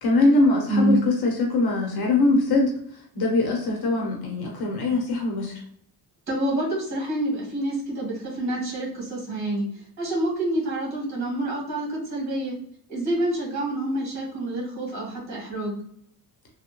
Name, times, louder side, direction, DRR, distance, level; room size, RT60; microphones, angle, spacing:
voice 1, 0.0-2.7 3.1-5.6, left 2 dB, 70° left, 0 dB, 0.9 m, -22 dB
voice 2, 0.7-1.0 6.3-9.7 10.0-12.5 12.9-15.8, right 1 dB, 45° right, -3 dB, 1.5 m, -27 dB
3.5 x 2.2 x 2.9 m, 0.65 s
cardioid pair, 140°, 39 cm